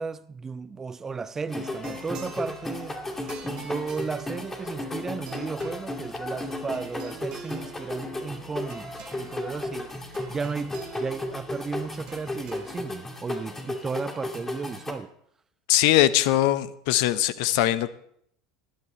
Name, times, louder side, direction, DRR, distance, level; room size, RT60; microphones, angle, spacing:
voice 1, 0.0-15.1, right 5 dB, 20° right, 0.7 m, -35 dB
sound 1, 1.5-14.9, left 2 dB, 15° left, 2.3 m, -35 dB
sound 2, 1.7-12.8, right 7 dB, 45° right, 1.9 m, -46 dB
voice 2, 15.7-17.9, left 14 dB, 55° left, 0.8 m, -21 dB
19.5 x 12.0 x 3.2 m
figure-of-eight pair, 75°, 2 cm